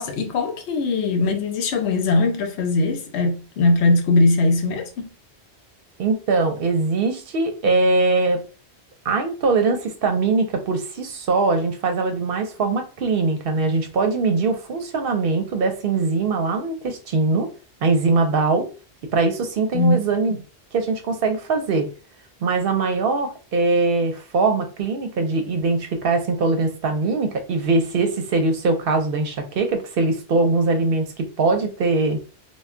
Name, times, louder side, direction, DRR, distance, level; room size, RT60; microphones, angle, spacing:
voice 1, 0.0-5.1 19.7-20.1, left 2 dB, 80° left, 0.9 m, -20 dB
voice 2, 6.0-8.4 9.0-17.5 17.8-18.7 19.1-20.4 20.7-21.9 22.4-32.2, right 3 dB, 65° right, 0.7 m, -21 dB
2.2 x 2.1 x 3.6 m
omnidirectional pair, 1.1 m